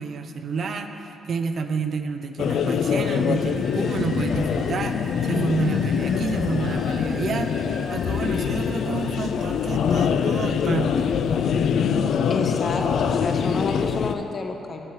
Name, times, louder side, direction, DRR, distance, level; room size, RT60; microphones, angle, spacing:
voice 1, 0.0-7.5 7.9-11.1, right 5 dB, 50° right, 7 dB, 0.5 m, -29 dB
sound 1, 2.4-14.1, left 7 dB, 65° left, 0.3 m, -24 dB
sound 2, 3.1-10.6, equal, 10° left, 1.2 m, -44 dB
sound 3, 5.0-11.0, left 2 dB, 90° right, 0.8 m, -46 dB
voice 2, 12.3-14.9, left 3 dB, 40° left, 4 dB, 0.7 m, -29 dB
7.4 x 7.0 x 4.7 m, 2.8 s
cardioid pair, 105°, 0 cm